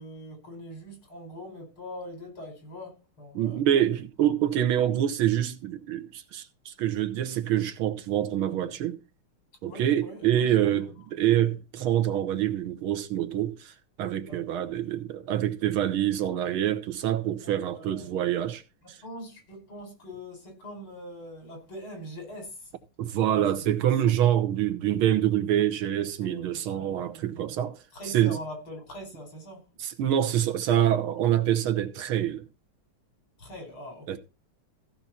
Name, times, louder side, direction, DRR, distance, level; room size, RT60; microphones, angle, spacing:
voice 1, 0.0-3.6 9.6-10.3 10.6-10.9 14.3-14.5 17.4-18.1 18.8-22.7 23.3-24.1 26.2-27.6 27.9-29.7 33.4-34.2, left 1 dB, 75° left, 5.4 m, -43 dB
voice 2, 3.3-9.0 9.6-18.6 18.9-19.0 23.0-27.8 28.1-28.4 29.8-32.4 34.1-34.2, right 11 dB, 75° right, 1.8 m, -26 dB
15.0 x 5.8 x 4.2 m
omnidirectional pair, 2.3 m